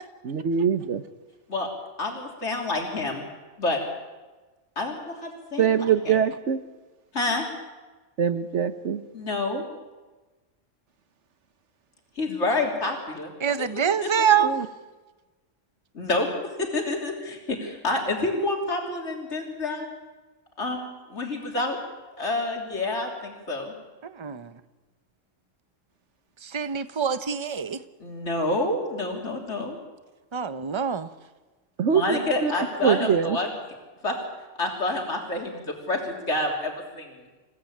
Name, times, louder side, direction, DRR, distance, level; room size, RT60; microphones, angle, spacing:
voice 1, 0.2-1.0 5.6-6.6 8.2-9.0 14.4-14.7 31.8-32.5 32.8-33.4, right 7 dB, 65° right, 10 dB, 1.3 m, -23 dB
voice 2, 2.0-3.2 3.6-3.8 4.7-5.7 6.1-6.2 7.1-7.4 9.1-9.6 12.2-13.3 13.7-14.3 15.9-16.3 16.6-19.9 20.6-21.8 22.2-23.7 28.0-29.8 31.9-33.5 34.0-34.2 34.6-37.1, left 2 dB, 60° left, 0 dB, 3.5 m, -28 dB
voice 3, 13.4-14.6 24.1-24.5 26.4-27.8 30.3-31.1, right 7 dB, 25° right, 11 dB, 0.8 m, -25 dB
28.0 x 16.5 x 8.6 m, 1.2 s
omnidirectional pair, 1.3 m